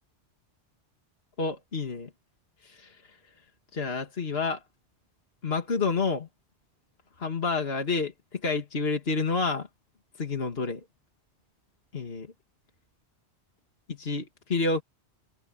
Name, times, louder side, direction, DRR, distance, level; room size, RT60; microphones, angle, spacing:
voice 1, 1.4-2.1 2.6-3.2 3.7-4.6 5.4-6.3 7.2-9.7 10.2-10.8 11.9-12.3 13.9-14.8, left 4 dB, 60° left, 2.4 m, -29 dB
open air
omnidirectional pair, 1.2 m